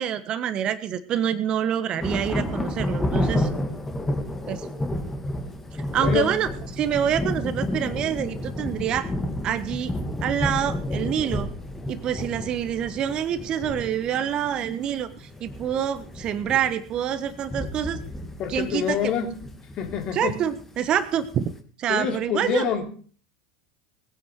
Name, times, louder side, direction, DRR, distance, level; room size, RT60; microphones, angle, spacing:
voice 1, 0.0-3.5 4.5-4.7 5.9-9.1 9.4-9.9 10.2-11.5 11.9-18.0 18.5-19.0 20.1-21.4 21.8-22.6, right 9 dB, 40° right, 12 dB, 1.3 m, -26 dB
sound 1, 2.0-21.6, left 1 dB, 15° left, 2.4 m, -31 dB
voice 2, 6.0-6.3 18.4-19.3 19.8-20.4 21.9-22.9, left 8 dB, 45° left, 5 dB, 3.0 m, -26 dB
19.5 x 10.0 x 4.9 m, 0.43 s
hypercardioid pair, 80°, 2 cm